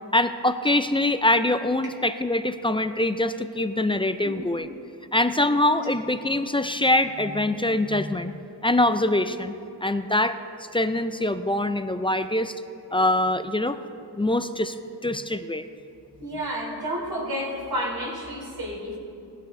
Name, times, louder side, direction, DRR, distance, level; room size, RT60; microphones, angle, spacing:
voice 1, 0.1-4.7 5.1-8.4 8.6-9.5 9.8-10.4 10.7-12.5 12.9-13.8 14.1-14.8 15.0-15.7, left 1 dB, 15° left, 10 dB, 0.3 m, -23 dB
voice 2, 16.2-19.0, equal, 60° right, -3 dB, 3.3 m, -31 dB
18.0 x 12.0 x 3.7 m, 2.6 s
wide cardioid pair, 135°, 40 cm